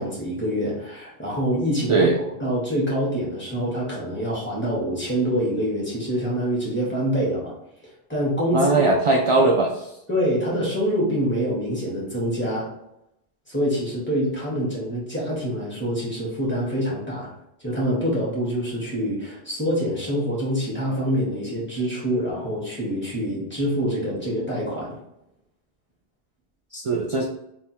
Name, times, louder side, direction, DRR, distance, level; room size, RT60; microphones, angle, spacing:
voice 1, 0.0-2.1 2.4-7.5 8.1-8.8 10.1-12.7 13.5-17.3 17.6-25.0, equal, 10° left, -6 dB, 1.4 m, -25 dB
voice 2, 8.5-9.8 26.7-27.2, right 3 dB, 60° right, -1 dB, 0.3 m, -19 dB
3.5 x 2.5 x 4.3 m, 0.81 s
omnidirectional pair, 1.1 m